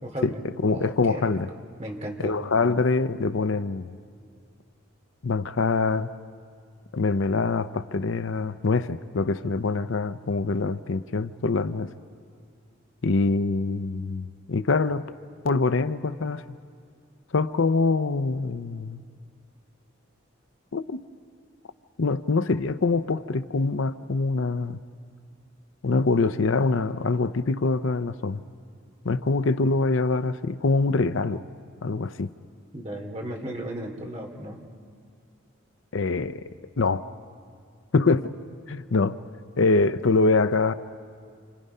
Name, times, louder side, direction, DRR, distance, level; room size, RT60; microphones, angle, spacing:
voice 1, 0.0-1.4 1.8-2.4 32.7-34.6, right 1 dB, 30° right, 1 dB, 2.7 m, -35 dB
voice 2, 0.6-1.5 2.2-4.0 5.2-6.1 6.9-11.9 13.0-15.1 15.4-16.6 17.3-19.0 20.7-21.1 22.0-24.8 25.8-28.4 29.0-31.4 31.8-32.3 35.9-36.4 36.8-37.1 37.9-38.3 38.7-39.2 39.6-40.7, left 3 dB, 75° left, 12 dB, 0.6 m, -24 dB
28.5 x 28.0 x 5.6 m, 2.2 s
head